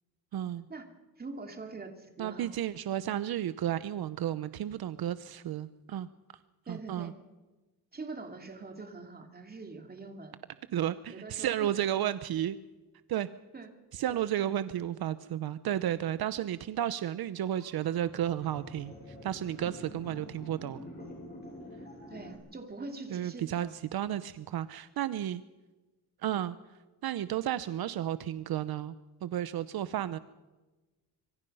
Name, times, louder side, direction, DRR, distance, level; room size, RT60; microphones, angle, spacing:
voice 1, 0.3-0.7 2.2-6.1 6.7-7.1 10.7-12.6 13.1-13.3 13.9-20.8 23.1-25.4 26.2-26.6 27.0-28.9 29.2-30.2, right 11 dB, 70° right, 14 dB, 0.8 m, -32 dB
voice 2, 1.2-2.5 6.7-7.1 7.9-10.4 11.1-11.8 13.5-13.7 14.1-14.5 19.7-19.8 22.1-23.8, right 3 dB, 25° right, 5 dB, 2.6 m, -44 dB
sound 1, 17.6-22.3, left 1 dB, 25° left, 7.0 m, -47 dB
25.5 x 23.5 x 5.5 m, 1.2 s
wide cardioid pair, 150°, 38 cm